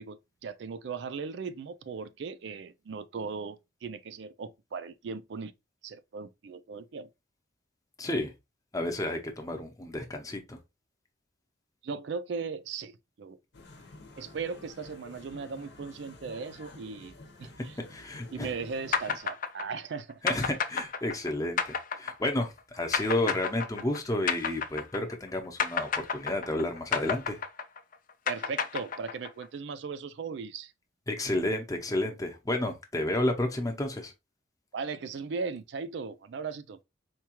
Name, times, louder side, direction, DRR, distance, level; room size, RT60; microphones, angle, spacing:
voice 1, 0.0-5.5 5.8-7.1 11.8-13.4 14.2-17.7 18.3-20.2 28.3-30.7 34.7-36.8, right 5 dB, 65° right, 0.4 m, -38 dB
voice 2, 8.0-8.3 8.7-10.6 17.9-18.5 20.2-27.4 31.1-34.1, left 1 dB, 20° left, 0.7 m, -31 dB
sound 1, 13.5-19.2, left 2 dB, 65° left, 0.8 m, -50 dB
sound 2, 18.9-25.3 25.6-29.4, left 6 dB, 45° left, 0.4 m, -31 dB
4.4 x 2.4 x 2.9 m
head